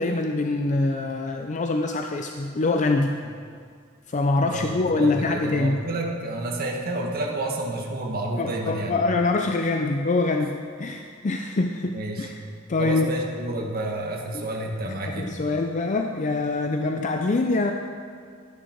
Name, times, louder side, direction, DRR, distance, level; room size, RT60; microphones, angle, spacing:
voice 1, 0.0-3.2 4.1-5.8 8.4-12.4 12.7-13.1 14.3-14.4 14.8-17.7, left 3 dB, 35° left, 4 dB, 0.5 m, -24 dB
voice 2, 4.4-8.9 11.9-12.3 12.8-15.3, right 1 dB, 45° right, 0 dB, 1.5 m, -30 dB
12.0 x 10.5 x 4.5 m, 2.1 s
head